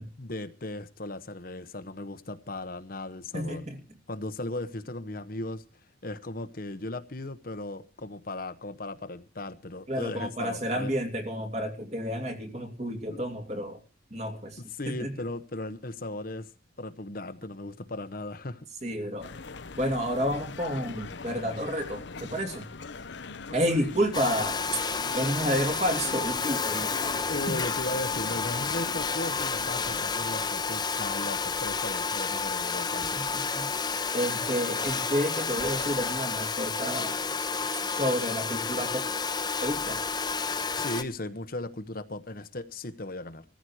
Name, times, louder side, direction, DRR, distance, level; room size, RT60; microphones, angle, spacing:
voice 1, 0.2-3.6 4.1-5.6 6.0-10.9 13.1-13.2 14.6-16.5 16.8-18.7 27.3-33.2 40.7-43.4, left 2 dB, 50° left, 1.1 m, -37 dB
voice 2, 3.3-3.8 9.9-13.8 14.1-15.2 18.8-19.3 19.8-22.7 23.5-24.8 25.1-26.9 27.3-27.6 33.1-33.7 34.1-37.5 37.9-39.1 39.6-40.0, equal, 35° right, 2.8 m, -30 dB
sound 1, 19.2-30.0, left 4 dB, 70° left, 0.9 m, -42 dB
Domestic sounds home sounds, 24.1-41.0, left 5 dB, 20° left, 1.1 m, -30 dB
17.0 x 14.5 x 4.8 m
head